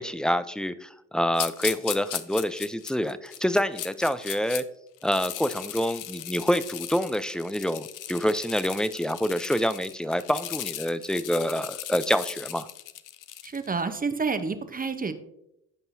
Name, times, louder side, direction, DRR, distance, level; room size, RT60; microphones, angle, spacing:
voice 1, 0.0-4.6 5.0-12.7, equal, ahead, 14 dB, 0.4 m, -27 dB
sound 1, 1.3-4.6 5.0-13.7, left 13 dB, 55° left, 0.6 m, -37 dB
voice 2, 13.4-15.1, right 4 dB, 25° right, 10 dB, 0.8 m, -29 dB
15.0 x 5.4 x 2.7 m, 0.81 s
hypercardioid pair, 55°, 37 cm